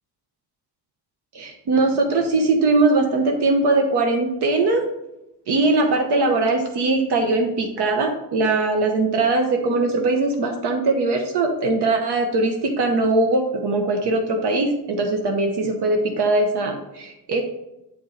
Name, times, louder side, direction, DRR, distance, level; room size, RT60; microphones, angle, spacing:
voice 1, 1.3-4.8 5.5-17.4, right 2 dB, 75° right, 3 dB, 1.0 m, -21 dB
7.9 x 4.6 x 4.0 m, 0.91 s
wide cardioid pair, 170°, 40 cm